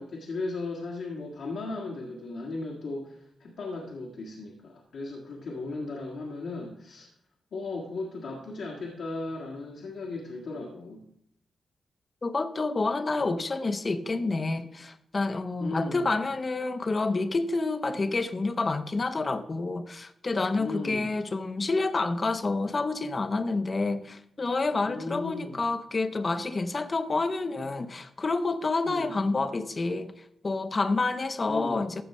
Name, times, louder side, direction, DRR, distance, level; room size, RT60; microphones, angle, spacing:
voice 1, 0.0-7.1 7.5-11.0 15.6-16.1 20.6-21.2 24.8-25.6 28.8-29.2 31.5-31.9, left 2 dB, 75° left, 1.6 m, -36 dB
voice 2, 12.2-30.1 30.4-32.0, left 3 dB, 40° left, 0.8 m, -28 dB
14.0 x 6.9 x 3.2 m
supercardioid pair, 40°, 0 cm